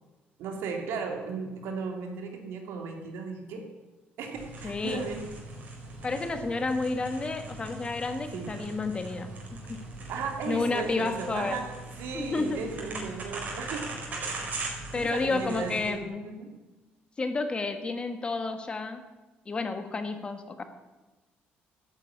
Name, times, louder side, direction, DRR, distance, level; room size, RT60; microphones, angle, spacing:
voice 1, 0.4-3.6 4.2-5.3 8.3-8.5 10.1-11.7 12.0-14.6 14.9-16.5, right 5 dB, 85° right, 3 dB, 2.9 m, -36 dB
sound 1, 4.3-15.9, right 2 dB, 40° right, 4.5 m, -40 dB
voice 2, 4.6-5.0 6.0-9.3 9.7-9.8 10.5-11.6 12.1-12.6 14.9-16.2 17.2-19.0 19.5-20.6, left 3 dB, 25° left, 8 dB, 1.4 m, -30 dB
12.5 x 9.8 x 8.6 m, 1.2 s
cardioid pair, 130°, 4 cm